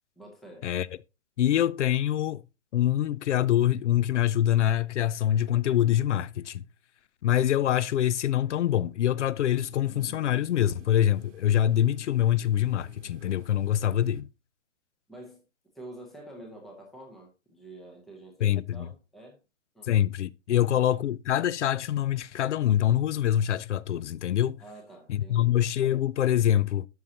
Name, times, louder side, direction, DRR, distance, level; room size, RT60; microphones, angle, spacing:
voice 1, 0.2-0.7 15.1-15.4 15.7-19.4 19.7-19.9 20.5-21.0 24.6-25.6, right 1 dB, ahead, 0.6 m, -48 dB
voice 2, 1.4-2.4 2.7-6.6 7.2-14.3 18.4-18.9 19.9-24.6 25.1-26.9, left 11 dB, 70° left, 0.5 m, -25 dB
sound 1, 7.6-7.7 9.6-14.2, right 2 dB, 70° right, 1.2 m, -53 dB
12.5 x 5.5 x 2.8 m
hypercardioid pair, 160°, 37 cm